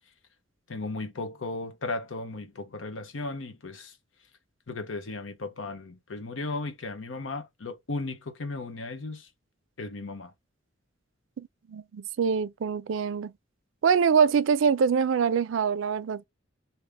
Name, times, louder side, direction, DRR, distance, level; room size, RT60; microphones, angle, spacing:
voice 1, 0.7-4.0 4.7-9.3 9.8-10.3, left 3 dB, 85° left, 0.8 m, -36 dB
voice 2, 11.4-13.3 13.8-16.2, right 6 dB, 85° right, 0.4 m, -24 dB
3.3 x 2.8 x 3.4 m
head